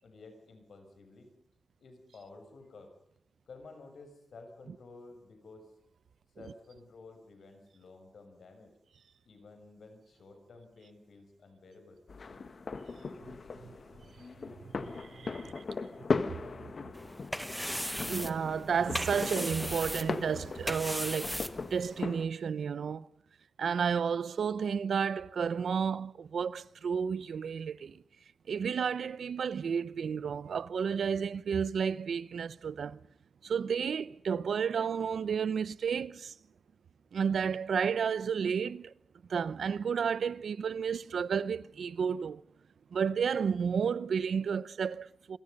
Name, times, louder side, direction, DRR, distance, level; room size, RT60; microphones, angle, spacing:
voice 1, 0.0-1.3 1.8-2.9 3.5-5.7 6.4-8.7 9.3-12.0 15.4-15.7, left 3 dB, 75° left, 7.0 m, -53 dB
sound 1, 12.1-22.3, left 4 dB, 50° left, 1.5 m, -38 dB
voice 2, 14.8-15.6 16.4-16.5 18.1-21.4 21.7-23.1 23.6-28.0 28.5-33.0 33.4-36.3 37.1-38.9 39.3-42.4 42.9-45.4, right 6 dB, 90° right, 0.8 m, -32 dB
sound 2, 16.9-22.0, equal, ahead, 1.2 m, -38 dB
28.5 x 24.5 x 5.5 m
wide cardioid pair, 145°, 0 cm